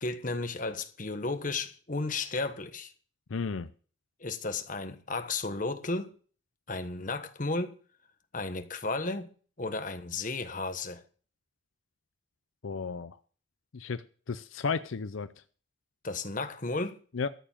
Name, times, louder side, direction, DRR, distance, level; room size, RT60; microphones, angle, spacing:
voice 1, 0.0-2.9 4.2-6.1 6.7-7.8 8.3-9.3 9.6-11.0 16.0-17.0, left 3 dB, 40° left, 1.2 m, -33 dB
voice 2, 3.3-3.7 12.6-13.2 13.7-15.3 17.1-17.3, left 5 dB, 80° left, 0.6 m, -33 dB
13.5 x 7.0 x 7.2 m
head